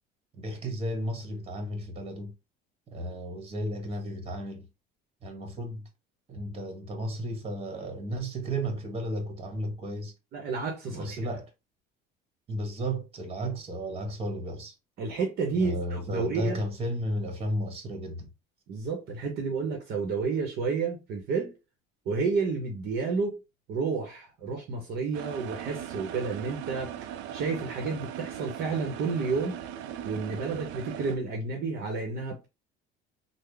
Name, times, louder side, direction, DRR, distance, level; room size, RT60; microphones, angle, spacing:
voice 1, 0.3-2.3 2.9-4.7 5.2-5.9 6.3-10.1 10.9-11.5 12.5-14.7 15.6-18.3, right 1 dB, 30° right, 1.2 m, -33 dB
voice 2, 10.3-11.2 15.0-16.6 18.7-21.6 22.1-23.4 23.7-29.6 30.0-32.5, right 4 dB, 55° right, 0.8 m, -31 dB
sound 1, 25.1-31.2, right 10 dB, 75° right, 0.4 m, -39 dB
3.6 x 2.0 x 3.3 m
cardioid pair, 135°, 19 cm